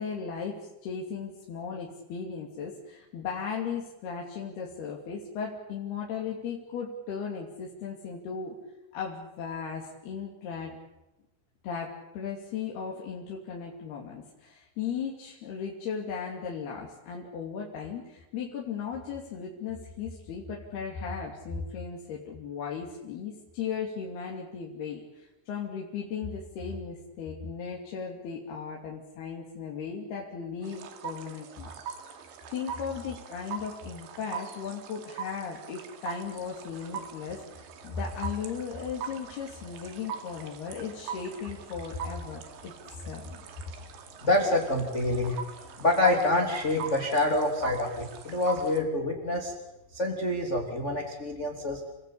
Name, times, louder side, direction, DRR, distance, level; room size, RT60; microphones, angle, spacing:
voice 1, 0.0-8.6 8.9-10.8 11.6-31.8 32.1-32.2 32.5-42.7 43.1-43.5, left 6 dB, 60° left, -2 dB, 4.5 m, -36 dB
sound 1, 30.6-48.8, right 7 dB, 75° right, 4.5 m, -42 dB
voice 2, 44.2-45.4 45.8-49.5 49.9-51.8, left 2 dB, 20° left, 1 dB, 2.6 m, -26 dB
30.0 x 19.5 x 8.7 m, 0.99 s
omnidirectional pair, 5.4 m